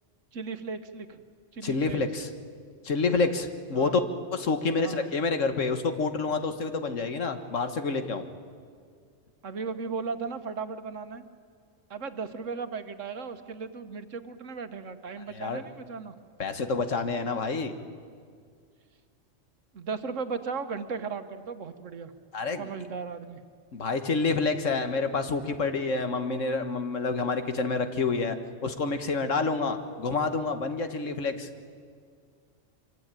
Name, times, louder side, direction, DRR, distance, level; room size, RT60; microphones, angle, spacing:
voice 1, 0.3-1.2 1.5-2.0 3.8-4.0 4.8-5.1 9.4-11.2 11.9-16.1 19.7-22.1 22.6-23.4, right 5 dB, 75° right, 9 dB, 1.6 m, -36 dB
voice 2, 1.6-2.3 2.8-4.0 4.3-8.3 15.3-15.6 16.4-17.7 22.3-22.7 23.7-28.4 28.6-31.5, left 4 dB, 75° left, 8 dB, 1.8 m, -28 dB
25.5 x 24.5 x 9.0 m, 2.1 s
omnidirectional pair, 1.3 m